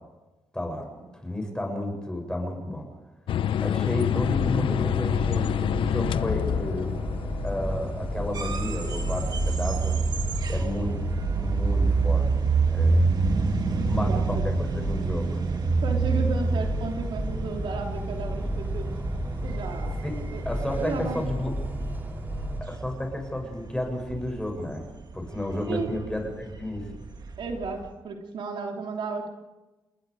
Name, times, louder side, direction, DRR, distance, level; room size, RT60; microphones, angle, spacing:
voice 1, 0.5-0.9 1.2-2.9 3.6-7.0 7.4-10.0 10.5-11.0 11.3-12.3 12.7-13.1 13.9-15.4 20.0-20.2 20.4-21.6 22.6-24.8 25.1-26.9, left 1 dB, 10° left, 3 dB, 7.5 m, -32 dB
sound 1, 3.3-11.3, left 10 dB, 75° left, 0.8 m, -29 dB
sound 2, 4.2-22.6, equal, 20° right, 6.2 m, -33 dB
sound 3, 8.3-27.9, right 4 dB, 50° right, 2.2 m, -28 dB
voice 2, 13.7-14.5 15.8-18.9 19.4-19.9 20.3-21.2 25.7-25.9 27.4-29.3, right 4 dB, 70° right, 2 dB, 3.4 m, -34 dB
29.0 x 21.0 x 5.1 m, 1.1 s
cardioid pair, 85°, 9 cm